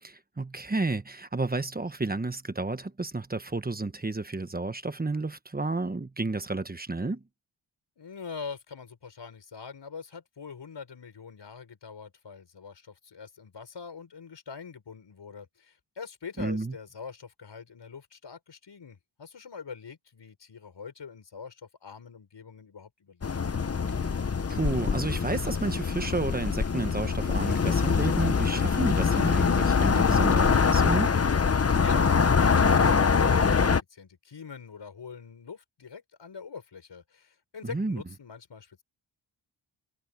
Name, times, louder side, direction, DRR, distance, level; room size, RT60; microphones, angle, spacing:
voice 1, 0.0-7.2 16.4-16.7 24.5-31.1 37.6-38.0, right 3 dB, 20° right, 1.2 m, -31 dB
voice 2, 8.0-23.5 31.7-38.8, left 5 dB, 60° left, 6.4 m, -44 dB
sound 1, 23.2-33.8, left 5 dB, 30° left, 0.9 m, -24 dB
wide cardioid pair, 115°, 49 cm